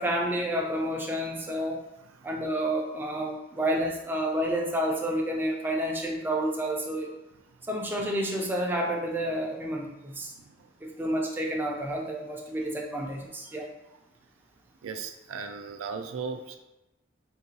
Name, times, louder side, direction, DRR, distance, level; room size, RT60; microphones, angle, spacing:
voice 1, 0.0-1.8 2.2-7.1 7.7-10.3 10.8-13.7, right 1 dB, 10° right, -1 dB, 0.4 m, -30 dB
voice 2, 10.3-10.7 12.6-12.7 13.5-13.6 14.8-16.6, right 5 dB, 85° right, 6 dB, 0.3 m, -37 dB
3.7 x 2.2 x 2.7 m, 0.98 s
head